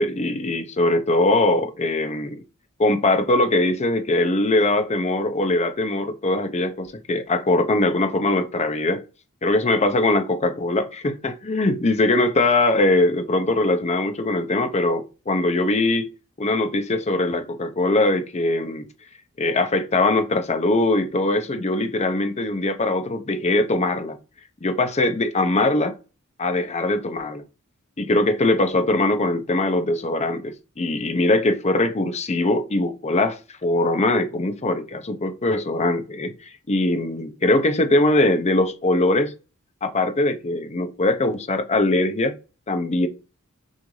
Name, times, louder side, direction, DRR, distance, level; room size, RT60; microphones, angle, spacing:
voice 1, 0.0-2.4 2.8-9.0 9.4-16.1 16.4-18.9 19.4-24.2 24.6-26.0 26.4-27.4 28.0-36.3 36.7-39.3 39.8-42.3 42.7-43.1, left 2 dB, 30° left, 0.6 m, -21 dB
6.3 x 2.6 x 3.1 m
head